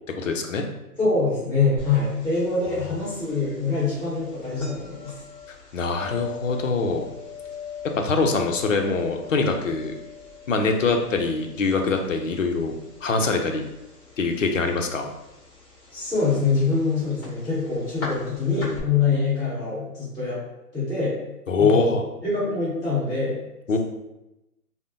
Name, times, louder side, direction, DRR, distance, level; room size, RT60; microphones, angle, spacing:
voice 1, 0.2-0.6 5.7-7.1 7.8-9.9 10.5-12.7 13.0-13.6 14.2-15.1 21.5-22.0 23.7-23.8, left 4 dB, 55° left, 4 dB, 0.5 m, -23 dB
voice 2, 1.0-5.1 15.9-20.4 20.7-21.2 21.6-23.4, left 4 dB, ahead, -17 dB, 1.2 m, -24 dB
sound 1, 1.8-18.8, left 4 dB, 20° left, 0.9 m, -42 dB
3.4 x 2.0 x 2.5 m, 0.94 s
figure-of-eight pair, 145°, 48 cm